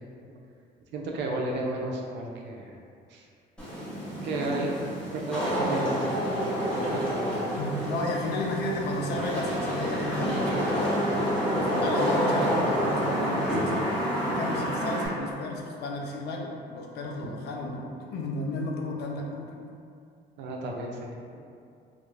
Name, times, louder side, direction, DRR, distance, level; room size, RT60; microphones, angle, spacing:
voice 1, 0.9-2.8 3.1-3.2 4.2-4.7 5.1-7.5 20.4-21.4, right 2 dB, 80° right, -1 dB, 0.4 m, -33 dB
Wind / Rain, 3.6-15.1, equal, 5° left, 0.7 m, -28 dB
voice 2, 7.6-19.5, left 2 dB, 65° left, 0 dB, 0.4 m, -33 dB
2.3 x 2.0 x 3.0 m, 2.4 s
cardioid pair, 130°, 18 cm